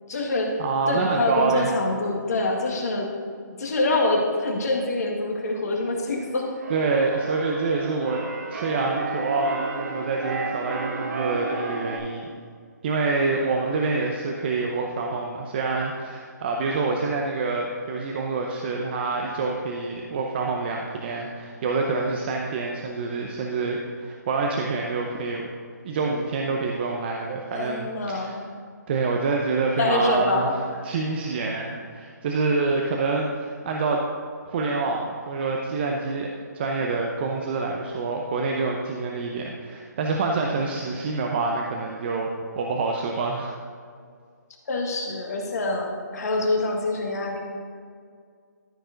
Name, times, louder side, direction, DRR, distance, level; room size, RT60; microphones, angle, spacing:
voice 1, 0.1-0.5 0.9-3.1 3.5-6.5 27.5-28.4 29.8-30.8 44.7-47.4, left 2 dB, 55° left, 0 dB, 1.9 m, -25 dB
voice 2, 0.6-1.7 6.7-8.2 8.5-12.3 12.8-25.5 25.8-28.3 28.9-30.5 30.8-34.0 34.5-42.3 42.6-43.5, right 3 dB, 35° right, 0 dB, 0.7 m, -26 dB
Keyboard (musical), 6.1-12.0, right 3 dB, 55° right, 1.2 m, -33 dB
13.5 x 4.6 x 3.9 m, 2.1 s
hypercardioid pair, 155°, 10 cm